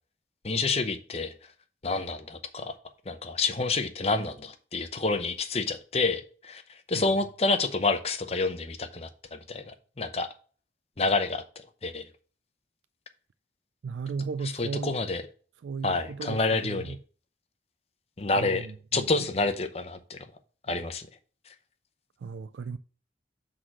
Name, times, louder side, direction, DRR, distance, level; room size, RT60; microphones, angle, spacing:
voice 1, 0.4-1.3 1.8-2.7 3.1-10.3 11.0-12.1 14.6-15.2 15.8-17.0 18.2-18.7 18.9-20.3 20.7-21.1, left 3 dB, 35° left, 0.7 m, -28 dB
voice 2, 13.8-14.9 15.6-17.0 18.4-19.1 22.2-22.8, right 5 dB, 90° right, 0.4 m, -35 dB
6.3 x 3.8 x 6.0 m
head